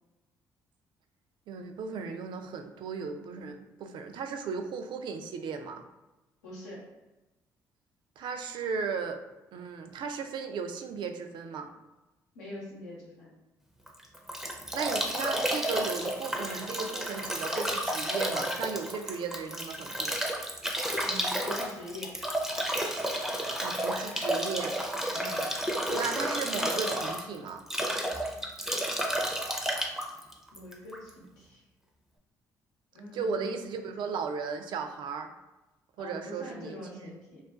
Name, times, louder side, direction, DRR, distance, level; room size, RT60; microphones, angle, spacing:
voice 1, 1.5-5.8 8.2-9.2 9.5-11.7 14.7-20.2 23.6-24.8 25.9-27.6 33.1-35.3 36.0-37.1, right 5 dB, 60° right, 6 dB, 0.3 m, -36 dB
voice 2, 6.4-6.9 12.3-13.3 21.0-22.2 25.1-25.5 30.5-31.6 32.9-33.5 36.0-37.4, left 1 dB, 90° left, -5 dB, 0.8 m, -44 dB
Bathtub (filling or washing) / Drip / Trickle dribble, 13.9-31.1, equal, 5° right, 0.5 m, -31 dB
2.4 x 2.3 x 2.3 m, 1.0 s
hypercardioid pair, 50°, 9 cm